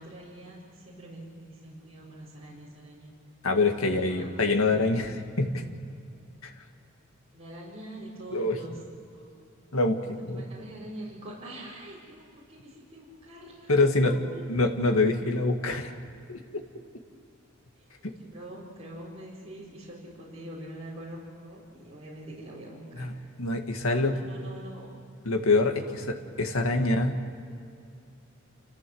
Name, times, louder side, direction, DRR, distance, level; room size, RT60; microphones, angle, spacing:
voice 1, 0.0-3.1 3.8-4.3 4.6-4.9 7.3-8.8 9.1-9.3 10.2-14.6 17.9-23.1 23.8-24.9 25.8-26.1 26.6-26.9, right 1 dB, 30° right, -7 dB, 4.7 m, -45 dB
voice 2, 3.4-5.6 6.4-6.5 8.3-8.6 9.7-10.4 13.7-14.2 14.5-15.9 16.3-16.6 23.0-23.1 23.4-24.2 25.3-27.1, left 2 dB, 90° left, 4 dB, 1.9 m, -25 dB
28.5 x 15.0 x 7.9 m, 2.5 s
head